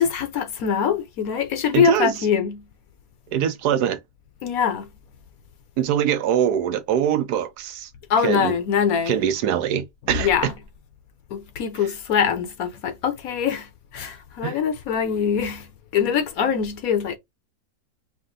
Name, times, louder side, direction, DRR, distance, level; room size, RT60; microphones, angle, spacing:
voice 1, 0.0-2.6 4.4-4.9 8.1-9.2 10.2-10.5 11.3-15.7 15.9-17.2, left 7 dB, 65° left, 1.2 m, -23 dB
voice 2, 1.7-2.1 3.3-4.0 5.8-7.9 8.2-8.5 9.1-10.5 14.4-14.6, right 9 dB, 85° right, 1.2 m, -23 dB
5.0 x 2.1 x 3.7 m
omnidirectional pair, 1.7 m